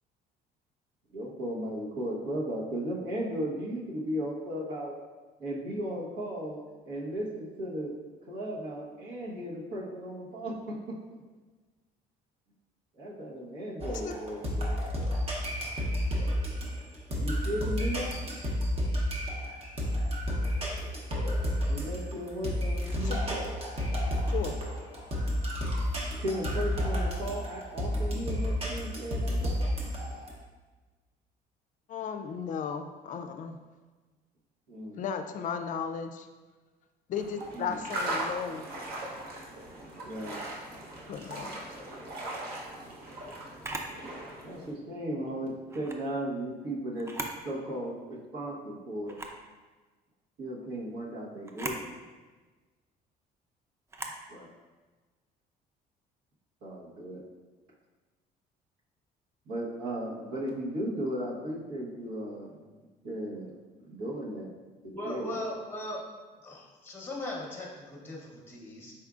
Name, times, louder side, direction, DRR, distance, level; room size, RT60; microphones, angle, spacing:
voice 1, 1.1-4.9 5.4-6.6 6.8-7.9 8.3-10.5 12.9-14.8 17.1-18.2 21.7-23.5 26.2-29.8 34.7-35.0 37.5-37.8 40.0-40.4 44.4-47.1 47.4-49.2 50.4-52.0 54.3-54.5 56.6-57.2 59.5-62.6 63.0-63.5 63.8-64.5 65.0-65.4, right 1 dB, 85° right, -5 dB, 1.2 m, -36 dB
sound 1, 13.8-30.3, equal, 35° right, 0.8 m, -31 dB
voice 2, 31.9-33.6 35.0-36.3 37.1-38.6 41.1-41.6, left 7 dB, 50° left, 7 dB, 0.4 m, -35 dB
sound 2, 37.1-44.7, right 1 dB, 65° right, 0.9 m, -39 dB
Camera, 43.6-44.0 45.7-46.0 47.0-47.4 47.9-48.0 49.1-49.4 51.5-51.8 53.9-54.2, right 2 dB, 15° right, 0.4 m, -38 dB
voice 3, 64.9-66.0 66.4-68.9, left 1 dB, 15° left, -1 dB, 0.8 m, -38 dB
4.4 x 3.6 x 2.4 m, 1.3 s
cardioid pair, 110°, 17 cm